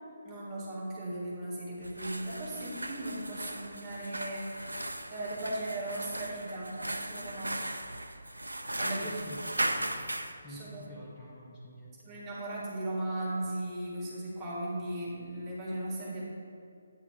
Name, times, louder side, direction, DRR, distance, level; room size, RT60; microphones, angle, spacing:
voice 1, 0.2-7.8 8.8-9.2 10.5-10.8 12.0-16.2, right 1 dB, 15° right, -6 dB, 1.4 m, -37 dB
sound 1, 1.8-10.4, right 1 dB, 80° right, 0.4 m, -37 dB
voice 2, 9.0-10.0 10.4-12.0, equal, 15° left, -7 dB, 0.8 m, -48 dB
8.7 x 3.6 x 4.5 m, 2.5 s
figure-of-eight pair, 145°, 0 cm